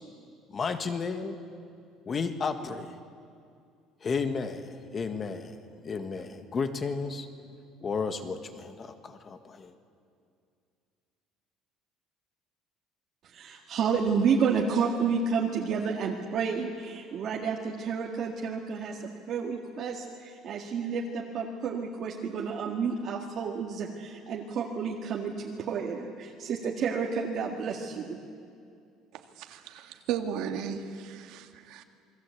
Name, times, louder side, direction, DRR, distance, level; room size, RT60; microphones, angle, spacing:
voice 1, 0.5-1.4 2.0-3.0 4.0-5.5 5.8-7.3 7.8-9.7, left 5 dB, 25° left, 8 dB, 1.6 m, -33 dB
voice 2, 13.2-28.2, right 6 dB, 40° right, -1 dB, 1.9 m, -30 dB
voice 3, 29.4-31.8, right 8 dB, 65° right, 5 dB, 1.9 m, -35 dB
28.5 x 22.0 x 8.5 m, 2.4 s
cardioid pair, 165°, 0 cm